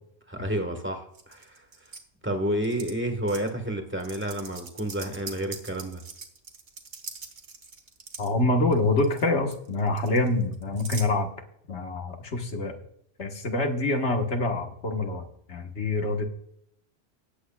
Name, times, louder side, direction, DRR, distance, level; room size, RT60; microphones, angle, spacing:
voice 1, 0.3-1.6 2.2-6.0, right 1 dB, 10° right, 5 dB, 1.5 m, -30 dB
sound 1, 1.1-2.0 2.6-2.9 3.3-3.5 4.0-8.3 8.7-9.3 9.5-11.1, right 4 dB, 85° right, 1.6 m, -42 dB
voice 2, 8.2-11.3 11.7-12.8 13.2-16.2, left 2 dB, 90° left, 4 dB, 1.7 m, -26 dB
19.0 x 8.2 x 2.3 m, 0.72 s
omnidirectional pair, 1.1 m